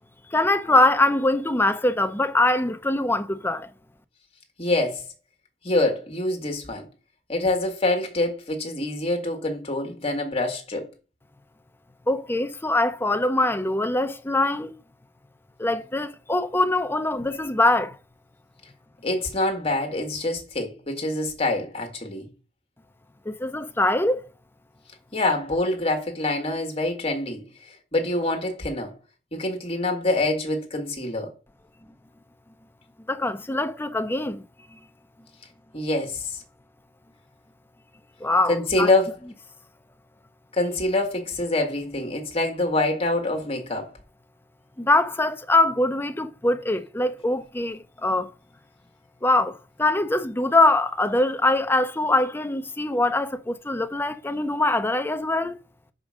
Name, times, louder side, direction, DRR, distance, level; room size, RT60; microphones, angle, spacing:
voice 1, 0.3-3.7 12.1-14.7 15.6-18.0 23.3-24.2 33.1-34.4 34.7-34.8 38.2-38.9 44.8-48.3 49.2-55.6, left 2 dB, 10° left, 0.6 m, -23 dB
voice 2, 4.6-5.0 5.6-6.9 7.3-10.9 19.0-22.3 25.1-29.0 29.3-31.3 35.7-36.4 38.5-39.2 40.5-43.9, left 2 dB, 35° left, 1.8 m, -25 dB
5.2 x 5.2 x 6.2 m
head